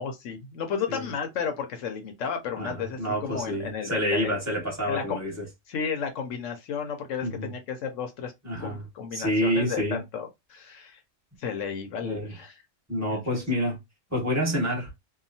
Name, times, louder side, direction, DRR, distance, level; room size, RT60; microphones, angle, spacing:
voice 1, 0.0-4.4 4.9-5.2 5.7-8.3 8.6-11.0 11.4-12.6 13.1-13.2, left 6 dB, 80° left, 1.0 m, -33 dB
voice 2, 2.6-5.4 7.2-7.5 8.4-8.8 9.1-10.0 12.0-12.3 12.9-13.8 14.1-14.9, equal, 15° right, 1.4 m, -28 dB
2.8 x 2.3 x 2.6 m
omnidirectional pair, 1.3 m